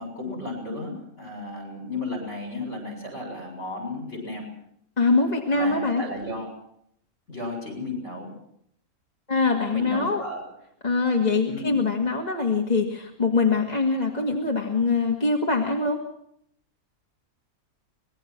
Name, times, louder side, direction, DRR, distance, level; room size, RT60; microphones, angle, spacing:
voice 1, 0.0-4.5 5.5-6.5 7.3-8.3 9.7-10.4 11.5-11.8, left 2 dB, 50° left, 3 dB, 8.0 m, -33 dB
voice 2, 5.0-6.0 9.3-10.2 10.8-16.0, left 3 dB, 30° left, 1 dB, 2.3 m, -23 dB
25.0 x 20.5 x 6.2 m, 0.70 s
omnidirectional pair, 1.5 m